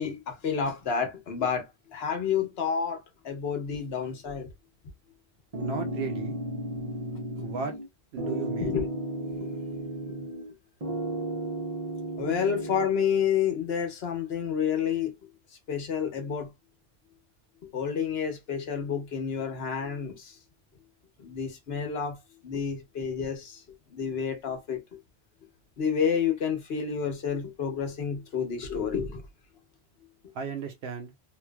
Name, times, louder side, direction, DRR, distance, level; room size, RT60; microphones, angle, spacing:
voice 1, 0.0-4.5 8.6-8.9 12.2-15.1 15.7-16.5 17.7-20.4 21.2-22.2 22.4-23.6 23.9-24.8 25.8-29.2, left 7 dB, 70° left, 1.1 m, -29 dB
sound 1, 5.5-7.9 8.2-10.5 10.8-12.9, right 1 dB, 40° right, 0.7 m, -34 dB
voice 2, 5.5-6.4 7.4-7.8 8.1-8.8 30.3-31.1, right 5 dB, 75° right, 0.8 m, -35 dB
2.9 x 2.6 x 2.2 m
omnidirectional pair, 1.1 m